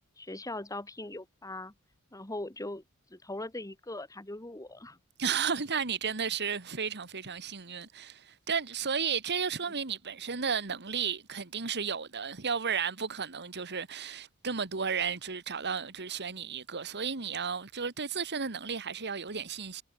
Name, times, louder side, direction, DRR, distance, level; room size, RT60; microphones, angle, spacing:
voice 1, 0.2-1.7 2.1-2.8 3.1-5.0 9.7-9.8, left 2 dB, 15° left, 1.9 m, -40 dB
voice 2, 5.2-19.8, right 6 dB, 50° right, 1.9 m, -33 dB
head